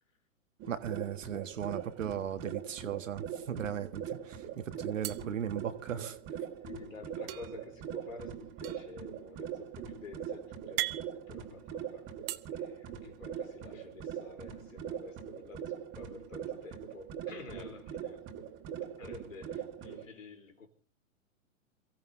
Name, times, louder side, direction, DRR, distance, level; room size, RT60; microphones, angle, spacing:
sound 1, 0.6-20.1, right 8 dB, 30° right, 2.3 m, -42 dB
voice 1, 0.7-6.2, right 9 dB, 70° right, 1.5 m, -37 dB
sound 2, 1.7-2.6 2.9-3.1 3.4-4.1 5.0-6.3 7.3-12.4, right 16 dB, 45° right, 1.0 m, -42 dB
voice 2, 6.6-12.1 12.5-18.2 19.0-20.7, left 3 dB, 75° left, 3.7 m, -50 dB
28.0 x 16.0 x 2.7 m
figure-of-eight pair, 110°, 39 cm